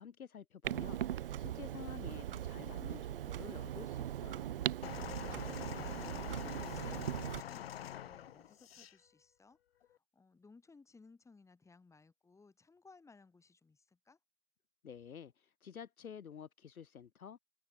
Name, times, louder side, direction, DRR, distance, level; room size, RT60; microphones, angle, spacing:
voice 1, 0.0-4.7 14.8-17.4, left 7 dB, 60° left, 2.8 m, -51 dB
Clock, 0.6-7.4, right 11 dB, 35° right, 0.8 m, -40 dB
sound 1, 4.8-9.0 9.8-10.0, left 11 dB, 40° left, 0.7 m, -45 dB
voice 2, 4.9-14.2, left 4 dB, 5° left, 7.4 m, -61 dB
figure-of-eight pair, 130°, 48 cm